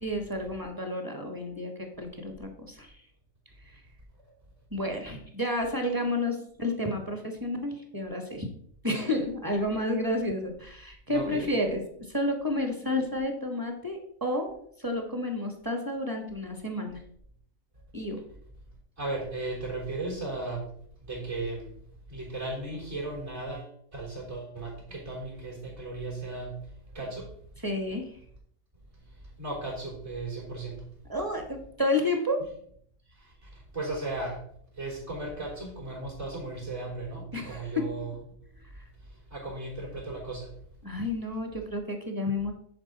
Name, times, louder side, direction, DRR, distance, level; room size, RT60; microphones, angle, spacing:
voice 1, 0.0-2.9 3.6-3.8 4.7-8.5 8.8-11.8 12.1-17.0 17.9-18.2 27.6-28.1 31.1-32.4 37.3-37.9 38.7-38.8 40.8-42.5, left 1 dB, 15° right, 4 dB, 1.3 m, -31 dB
voice 2, 11.1-11.5 19.0-20.7 21.0-21.8 22.1-27.3 29.2-30.8 33.1-34.4 34.7-38.5 39.0-40.5, right 2 dB, 50° right, -4 dB, 4.1 m, -36 dB
10.5 x 4.8 x 4.1 m, 0.64 s
omnidirectional pair, 1.4 m